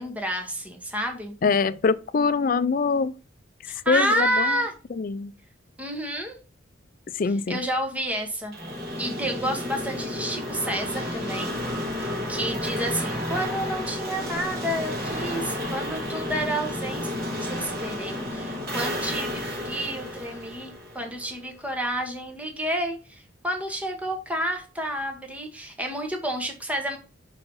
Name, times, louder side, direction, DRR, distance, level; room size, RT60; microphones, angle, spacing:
voice 1, 0.0-1.3 3.7-4.7 5.8-6.4 7.2-8.5 9.0-11.6 12.0-17.1 17.4-27.0, equal, 5° right, 1.0 m, -30 dB
voice 2, 1.4-3.1 3.9-4.5 5.0-5.3 7.2-7.6, left 4 dB, 45° left, 0.4 m, -23 dB
sound 1, 8.5-21.4, left 1 dB, 50° right, 3.8 m, -31 dB
5.7 x 4.1 x 5.3 m
head